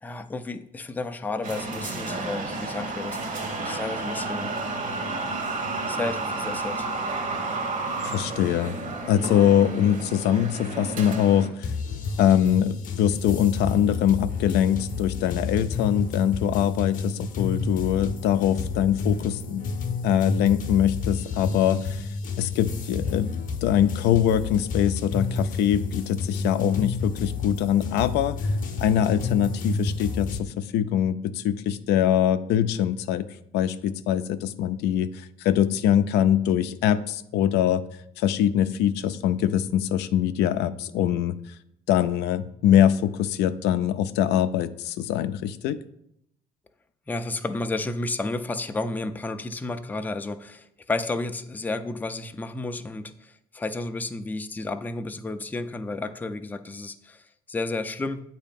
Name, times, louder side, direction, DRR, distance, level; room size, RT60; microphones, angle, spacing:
voice 1, 0.0-4.6 5.9-6.9 47.1-58.2, left 2 dB, 10° left, 8 dB, 0.4 m, -32 dB
sound 1, 1.4-11.5, right 3 dB, 50° right, 1.1 m, -31 dB
voice 2, 8.0-8.8 9.1-11.7 12.2-19.7 20.0-22.1 22.4-23.3 23.6-28.5 28.8-33.3 33.5-37.8 38.2-41.4 41.9-45.8, left 10 dB, 80° left, 11 dB, 0.4 m, -23 dB
sound 2, 11.6-30.4, left 4 dB, 50° left, 0.7 m, -30 dB
8.2 x 2.8 x 5.2 m, 0.75 s
cardioid pair, 110°, 17 cm